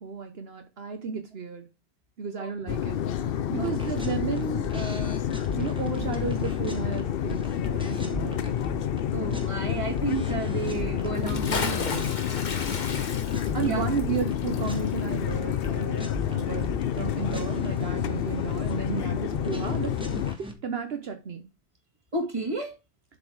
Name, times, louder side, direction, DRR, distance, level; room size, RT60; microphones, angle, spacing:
voice 1, 0.0-1.7 2.2-3.0 3.5-8.6 12.7-13.1 13.5-20.0 20.4-21.4, right 6 dB, 70° right, 1.1 m, -33 dB
sound 1, 2.7-20.3, left 9 dB, 65° left, 0.8 m, -29 dB
sound 2, 3.6-9.0 9.3-11.7 12.0-14.3 14.6-15.0 15.3-20.5, equal, 5° right, 1.3 m, -40 dB
voice 2, 9.1-12.0 13.2-13.3 13.6-13.8 22.1-22.8, right 3 dB, 30° right, 1.9 m, -32 dB
Bathtub (filling or washing) / Splash splatter, 11.1-16.1 16.4-16.5, left 4 dB, 45° left, 1.1 m, -34 dB
8.0 x 4.3 x 4.6 m
omnidirectional pair, 1.1 m